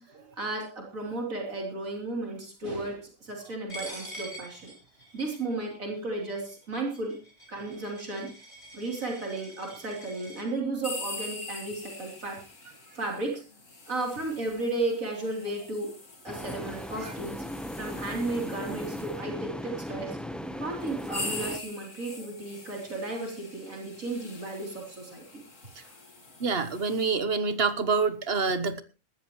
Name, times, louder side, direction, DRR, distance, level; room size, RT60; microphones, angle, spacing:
voice 1, 0.0-4.7 5.1-7.2 7.5-8.3 8.7-12.4 12.9-13.4 13.9-15.9 16.2-17.4 17.8-20.2 20.6-25.4 25.8-26.0, right 2 dB, 75° right, 0 dB, 3.9 m, -34 dB
Coin (dropping), 3.7-10.4, equal, 35° left, 6.0 m, -45 dB
sound 1, 10.8-19.2 20.0-20.1 20.8-27.1, left 3 dB, 65° left, 2.9 m, -43 dB
sound 2, 16.3-21.6, equal, ahead, 0.7 m, -37 dB
voice 2, 26.4-28.8, right 4 dB, 50° right, 12 dB, 1.3 m, -26 dB
19.0 x 13.5 x 3.1 m, 0.32 s
omnidirectional pair, 1.4 m